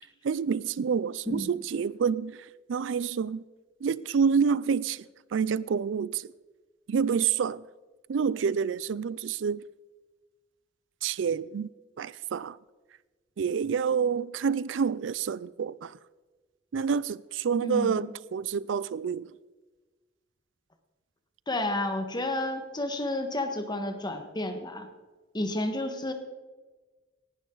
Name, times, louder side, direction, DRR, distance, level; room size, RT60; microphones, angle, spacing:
voice 1, 0.2-3.4 3.8-6.3 6.9-7.6 8.1-9.6 11.0-11.7 12.0-12.6 13.4-16.0 16.7-19.3, right 6 dB, 80° right, 0.4 m, -28 dB
voice 2, 17.6-18.1 21.5-24.9 25.3-26.1, left 1 dB, 25° left, 1.5 m, -31 dB
18.5 x 11.5 x 3.9 m
head